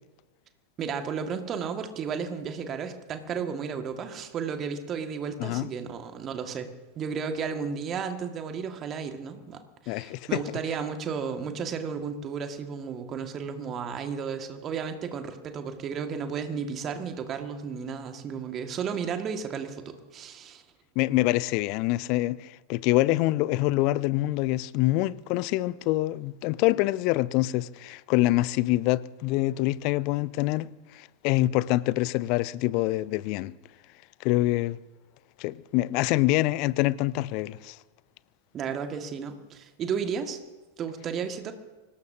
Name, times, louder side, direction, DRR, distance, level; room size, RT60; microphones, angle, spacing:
voice 1, 0.8-6.7 6.9-20.6 38.5-40.4 40.8-41.5, right 6 dB, 30° right, 1.8 m, -33 dB
voice 2, 5.4-5.7 9.9-10.4 21.0-30.7 30.9-33.5 34.2-34.8 35.4-37.8, left 18 dB, 45° left, 0.5 m, -25 dB
24.5 x 19.0 x 2.8 m
figure-of-eight pair, 90°, 0 cm